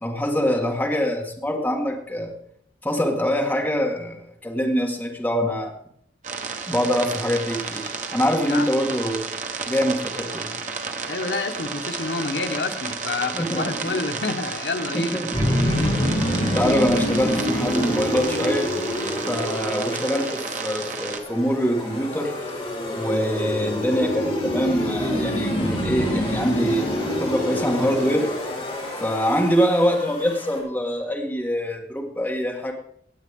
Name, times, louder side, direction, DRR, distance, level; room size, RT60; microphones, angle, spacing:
voice 1, 0.0-2.3 2.8-5.7 6.7-9.2 9.7-10.5 13.3-14.0 14.9-15.3 15.8-15.9 16.4-18.7 19.2-22.3 22.9-26.9 27.2-28.3 29.0-32.7, equal, 10° left, 0 dB, 1.7 m, -24 dB
sound 1, 6.2-21.2, right 5 dB, 45° right, 1.1 m, -32 dB
voice 2, 11.1-15.2, left 3 dB, 70° left, 6 dB, 1.1 m, -28 dB
sound 2, 15.3-30.6, equal, 30° left, 4.3 m, -26 dB
17.0 x 8.7 x 3.6 m, 0.65 s
head